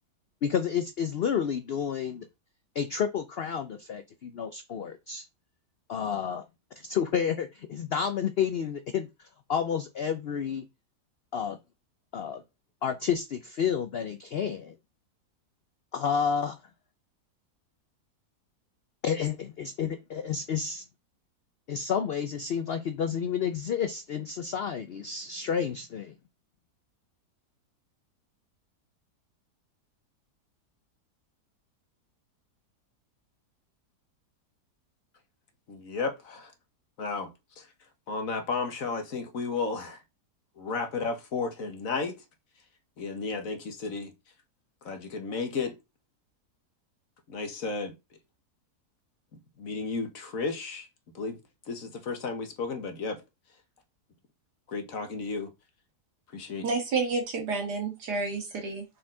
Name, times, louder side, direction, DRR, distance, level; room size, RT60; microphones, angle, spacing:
voice 1, 0.4-2.3 2.7-5.3 5.9-6.4 6.8-10.7 11.3-11.6 12.1-12.4 12.8-14.7 15.9-16.6 19.0-20.8 21.7-26.1, left 7 dB, 75° left, 0.5 m, -30 dB
voice 2, 35.7-36.5 37.0-37.3 37.6-37.7 38.1-40.0 40.6-42.2 43.0-44.1 44.8-45.8 47.3-47.9 49.6-50.9 51.1-51.4 51.7-53.2 54.7-55.5 56.3-56.7, left 4 dB, 60° left, 1.5 m, -33 dB
voice 3, 56.6-58.8, right 4 dB, 75° right, 2.4 m, -30 dB
6.4 x 4.3 x 3.8 m
omnidirectional pair, 1.7 m